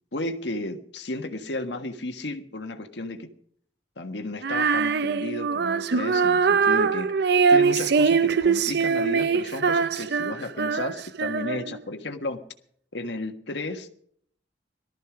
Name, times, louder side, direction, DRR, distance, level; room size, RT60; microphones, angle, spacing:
voice 1, 0.1-3.3 4.0-12.4 12.9-13.9, left 2 dB, 70° left, 1.5 m, -33 dB
Female singing, 4.4-11.8, right 5 dB, 65° right, 0.5 m, -22 dB
19.0 x 13.5 x 5.0 m
head